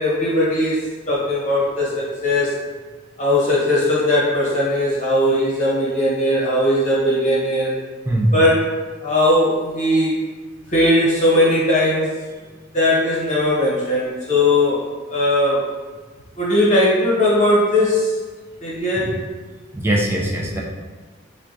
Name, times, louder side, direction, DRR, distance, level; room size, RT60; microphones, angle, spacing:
voice 1, 0.0-2.5 3.2-7.7 8.3-8.7 9.0-10.2 10.7-12.1 12.7-15.6 16.4-18.1 18.6-19.1, left 1 dB, 35° left, -7 dB, 1.0 m, -18 dB
voice 2, 19.7-20.6, right 1 dB, 10° right, -2 dB, 0.3 m, -20 dB
3.7 x 2.2 x 2.6 m, 1.4 s
head